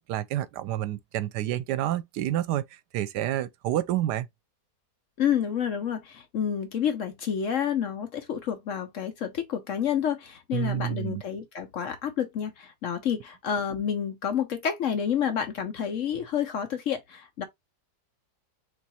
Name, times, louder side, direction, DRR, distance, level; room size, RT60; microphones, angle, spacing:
voice 1, 0.0-4.3 10.5-11.2, right 13 dB, 80° right, 1.2 m, -29 dB
voice 2, 5.2-17.4, left 8 dB, 60° left, 0.9 m, -29 dB
3.5 x 3.1 x 4.1 m
omnidirectional pair, 1.8 m